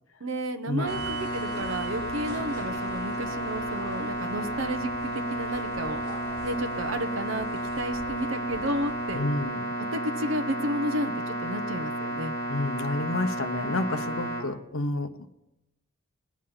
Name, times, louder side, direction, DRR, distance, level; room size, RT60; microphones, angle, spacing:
voice 1, 0.2-6.0 6.4-7.5 7.8-9.2 9.9-12.3, right 1 dB, 70° right, 7 dB, 0.9 m, -32 dB
sound 1, 0.8-14.4, right 1 dB, 15° left, 4.7 m, -32 dB
sound 2, 0.8-9.4, right 2 dB, 50° right, 4.3 m, -44 dB
voice 2, 9.1-9.6 12.5-15.1, left 2 dB, 75° left, 7 dB, 1.1 m, -29 dB
19.5 x 7.4 x 5.7 m, 0.92 s
head